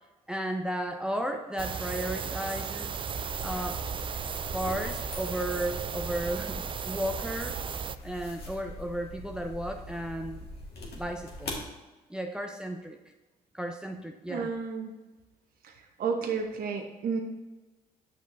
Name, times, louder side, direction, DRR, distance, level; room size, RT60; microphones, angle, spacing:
voice 1, 0.3-2.9 3.4-3.8 4.5-7.6 8.0-10.5 10.9-11.5 12.1-13.0 13.5-14.5, right 1 dB, 5° right, 3 dB, 0.7 m, -34 dB
sound 1, 1.6-8.0, right 6 dB, 30° right, 0.4 m, -35 dB
sound 2, 3.1-11.7, left 1 dB, 60° left, 1.7 m, -42 dB
voice 2, 14.3-14.9 15.6-17.2, right 5 dB, 50° right, 3 dB, 0.9 m, -32 dB
9.4 x 6.2 x 2.7 m, 1.1 s
hypercardioid pair, 55°, 19 cm